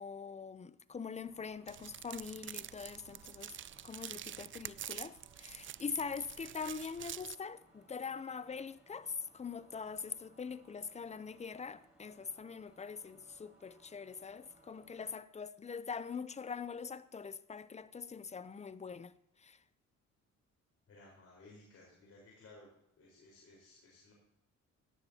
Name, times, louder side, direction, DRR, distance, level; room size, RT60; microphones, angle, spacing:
voice 1, 0.0-3.6 3.8-19.1 19.4-19.6, left 5 dB, 20° left, 0.6 m, -43 dB
sound 1, 1.1-15.1, right 1 dB, 5° right, 5.2 m, -66 dB
sound 2, 1.7-7.3, right 11 dB, 40° right, 0.4 m, -47 dB
voice 2, 20.9-22.7 23.0-24.1, left 2 dB, 50° left, 4.3 m, -58 dB
17.0 x 11.5 x 2.8 m
cardioid pair, 90°, 30 cm